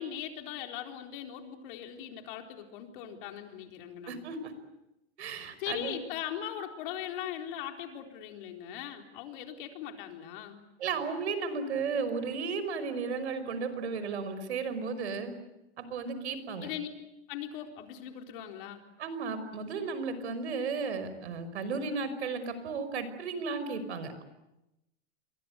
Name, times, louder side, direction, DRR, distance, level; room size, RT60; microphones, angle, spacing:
voice 1, 0.0-4.2 5.6-10.6 16.6-16.9 17.3-18.8, left 10 dB, 50° left, 4 dB, 4.2 m, -40 dB
voice 2, 4.1-4.5 5.2-5.9 10.8-15.3 15.8-16.7 19.0-24.2, right 4 dB, 75° right, 12 dB, 5.6 m, -34 dB
29.0 x 23.5 x 8.2 m, 0.93 s
hypercardioid pair, 145°, 33 cm